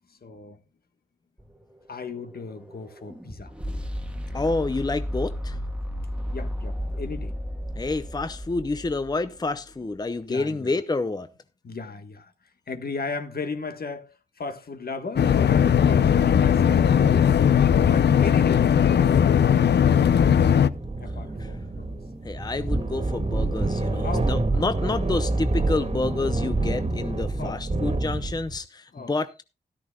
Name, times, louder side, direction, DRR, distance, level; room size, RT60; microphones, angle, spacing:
voice 1, 0.1-0.6 1.9-3.6 6.3-7.4 10.3-10.7 11.6-12.3 12.7-17.3 17.8-19.3 21.0-21.9 24.0-24.3 27.4-27.7 28.9-29.1, left 4 dB, 65° left, 1.5 m, -36 dB
sound 1, 1.4-9.5, equal, 5° right, 1.5 m, -34 dB
voice 2, 4.3-5.6 7.8-11.3 21.4-21.5 22.2-29.3, left 3 dB, 25° left, 0.6 m, -28 dB
sound 2, 15.2-20.7, left 8 dB, 80° left, 0.6 m, -18 dB
sound 3, 20.2-28.6, right 2 dB, 35° right, 1.9 m, -27 dB
13.0 x 13.0 x 2.3 m
wide cardioid pair, 90°, 17 cm